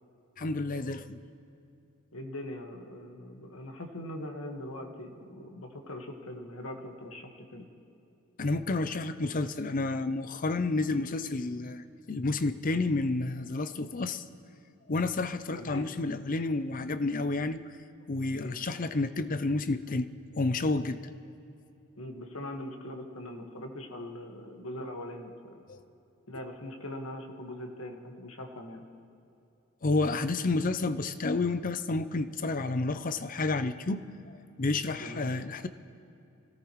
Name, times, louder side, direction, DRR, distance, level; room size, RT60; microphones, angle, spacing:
voice 1, 0.4-1.2 8.4-14.2 14.9-17.6 18.1-20.1 20.4-21.1 25.7-25.8 29.8-34.0 34.6-35.7, left 3 dB, 40° left, 12 dB, 0.6 m, -30 dB
voice 2, 2.1-7.7 15.5-15.9 18.3-18.6 22.0-25.6 26.3-28.8 35.0-35.3, left 1 dB, 75° left, 3 dB, 1.7 m, -41 dB
25.0 x 17.0 x 3.2 m, 2.7 s
head